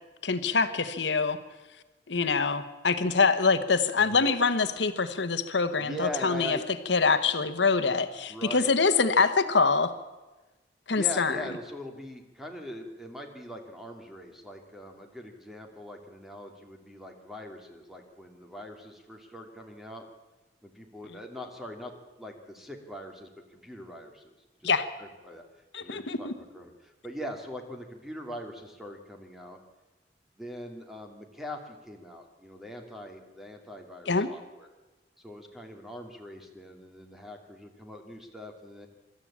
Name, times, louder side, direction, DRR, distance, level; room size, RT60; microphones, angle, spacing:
voice 1, 0.2-1.4 2.1-6.6 6.9-9.9 10.9-11.4 24.6-24.9 25.7-26.3 34.1-34.3, left 4 dB, 75° left, 9 dB, 1.1 m, -25 dB
voice 2, 4.0-4.3 5.8-6.7 8.3-8.7 10.9-20.1 20.6-21.9 22.2-24.2 24.6-24.7 25.0-25.4 25.8-29.6 30.4-34.7 35.2-38.9, equal, ahead, 3 dB, 2.5 m, -42 dB
24.5 x 13.0 x 8.6 m, 1.2 s
head